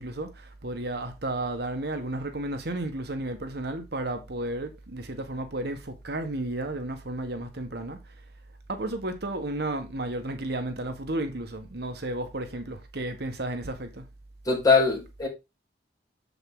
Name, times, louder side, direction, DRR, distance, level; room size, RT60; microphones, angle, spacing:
voice 1, 0.0-8.1 8.7-14.1, right 1 dB, 65° right, 1.5 m, -33 dB
voice 2, 14.4-15.3, left 4 dB, 20° left, 5.1 m, -21 dB
7.7 x 7.5 x 3.8 m
head